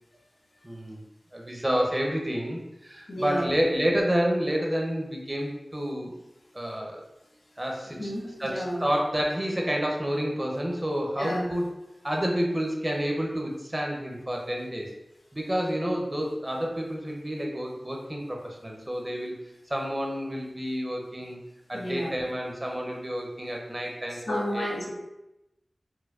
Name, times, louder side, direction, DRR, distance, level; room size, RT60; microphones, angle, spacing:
voice 1, 0.6-1.0 1.3-6.1 6.5-7.0 7.6-8.1 8.4-11.7 12.0-14.9 15.3-19.4 19.7-21.4 21.7-24.6, equal, 25° right, 0 dB, 0.5 m, -29 dB
voice 2, 3.1-3.4 7.9-8.8 11.2-11.5 21.7-22.1 24.1-24.9, equal, 75° left, -4 dB, 1.0 m, -31 dB
4.4 x 2.1 x 2.3 m, 0.93 s
wide cardioid pair, 75°, 0 cm